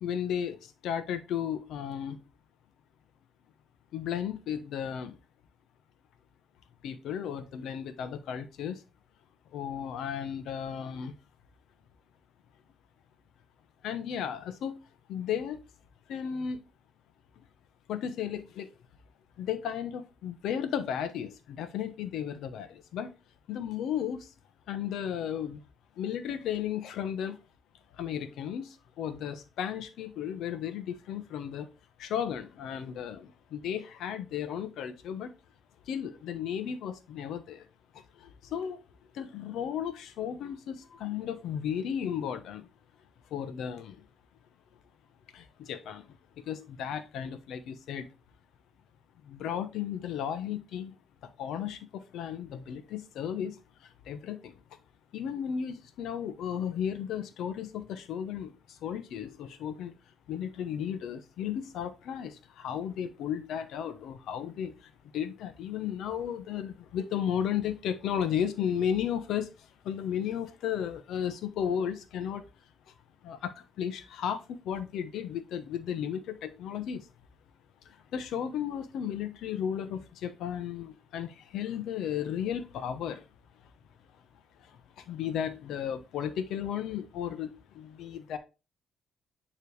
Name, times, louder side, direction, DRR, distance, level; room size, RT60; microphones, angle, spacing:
voice 1, 0.0-2.2 3.9-5.2 6.8-8.8 9.5-11.1 13.8-14.8 15.1-15.6 16.1-16.6 17.9-18.7 19.4-23.1 23.5-24.3 24.7-25.6 26.0-27.4 27.9-31.7 32.0-35.3 35.9-37.7 37.9-38.8 39.1-42.7 43.3-44.0 45.3-46.1 46.4-48.1 49.2-50.9 51.2-54.6 55.1-59.9 60.3-72.4 73.2-77.1 77.9-83.2 84.6-88.4, left 9 dB, 80° left, 0.9 m, -34 dB
9.3 x 3.2 x 3.3 m
cardioid pair, 90°, 0 cm